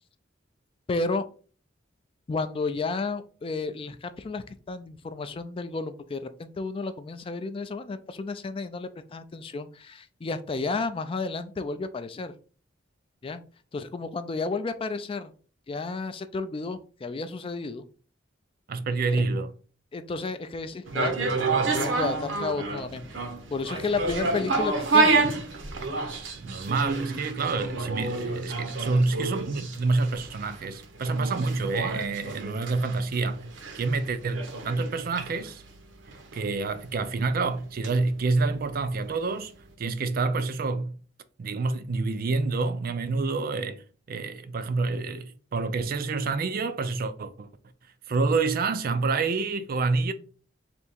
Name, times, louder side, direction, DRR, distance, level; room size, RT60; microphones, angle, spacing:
voice 1, 0.9-1.3 2.3-12.3 13.2-13.4 13.7-15.3 15.7-17.8 19.2-19.3 19.9-21.3 21.7-23.1 23.5-25.2, left 3 dB, 30° left, 0.3 m, -32 dB
voice 2, 18.7-19.5 26.4-33.4 33.7-35.6 36.3-39.5 39.8-41.0 41.4-47.5 48.1-50.1, right 3 dB, 50° right, 0.4 m, -28 dB
sound 1, 20.9-39.0 39.3-39.4, right 3 dB, 75° right, 0.8 m, -29 dB
3.5 x 2.8 x 4.2 m
head